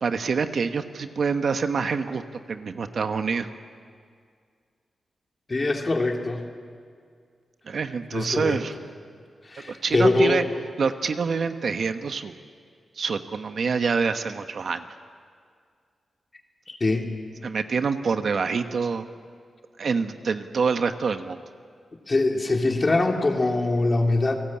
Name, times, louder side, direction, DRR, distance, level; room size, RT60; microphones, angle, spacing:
voice 1, 0.0-2.2 2.5-3.5 7.7-8.7 9.6-10.4 10.8-12.4 13.0-14.8 17.4-19.1 19.8-21.4, right 5 dB, 60° right, 8 dB, 1.2 m, -26 dB
voice 2, 5.5-6.5 8.1-8.6 9.4-10.4 16.7-17.1 22.1-24.4, left 2 dB, 30° left, 2 dB, 2.8 m, -23 dB
29.5 x 19.0 x 8.7 m, 2.1 s
wide cardioid pair, 120°, 0 cm